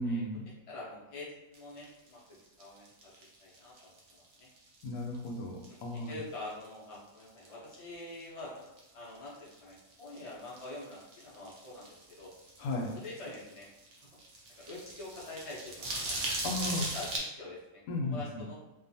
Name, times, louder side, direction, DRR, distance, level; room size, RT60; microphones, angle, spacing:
voice 1, 0.0-0.5 4.8-6.2 12.6-12.9 16.4-16.9 17.9-18.4, left 1 dB, 85° left, 1 dB, 1.0 m, -35 dB
voice 2, 0.7-2.2 2.6-3.1 3.4-4.5 5.7-5.8 6.1-8.7 8.9-12.3 12.9-13.7 14.0-14.1 14.6-16.2 16.6-18.6, left 2 dB, 40° left, -5 dB, 0.4 m, -45 dB
sound 1, 1.5-5.3 5.6-6.2 6.5-6.7 6.9-8.9 9.1-17.2, right 2 dB, 60° right, 0.7 m, -40 dB
2.6 x 2.3 x 2.6 m, 0.99 s
omnidirectional pair, 1.5 m